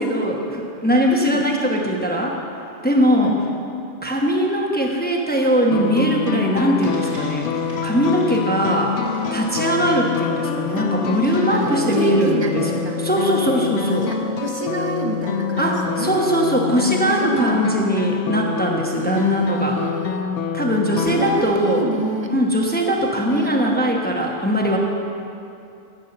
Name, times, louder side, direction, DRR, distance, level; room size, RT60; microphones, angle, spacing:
voice 1, 0.0-2.4 2.8-3.3 4.0-7.5 7.8-9.0 9.3-12.7 13.0-14.1 15.6-19.8 20.5-21.9 22.3-24.8, equal, 10° left, -1 dB, 0.9 m, -20 dB
voice 2, 1.1-1.4 3.2-3.4 11.5-13.0 13.9-16.2 17.2-17.8 19.0-20.2 21.1-22.3 23.3-23.5, right 2 dB, 25° right, 2 dB, 1.0 m, -28 dB
sound 1, 5.7-21.4, left 7 dB, 80° left, 0.9 m, -26 dB
sound 2, 6.8-16.3, right 3 dB, 70° right, 3.0 m, -38 dB
15.0 x 5.6 x 6.7 m, 2.6 s
omnidirectional pair, 1.2 m